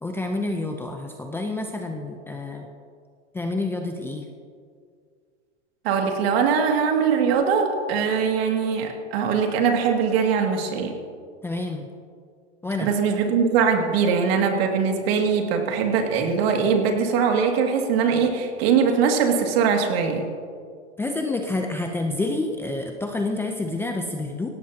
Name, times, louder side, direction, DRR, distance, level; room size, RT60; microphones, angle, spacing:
voice 1, 0.0-2.7 3.3-4.3 11.4-11.9 12.6-12.9 21.0-24.5, left 2 dB, 5° left, 3 dB, 0.6 m, -28 dB
voice 2, 5.8-10.9 12.8-20.2, right 6 dB, 55° right, 3 dB, 2.4 m, -21 dB
17.5 x 17.0 x 2.9 m, 2.1 s
hypercardioid pair, 135°, 36 cm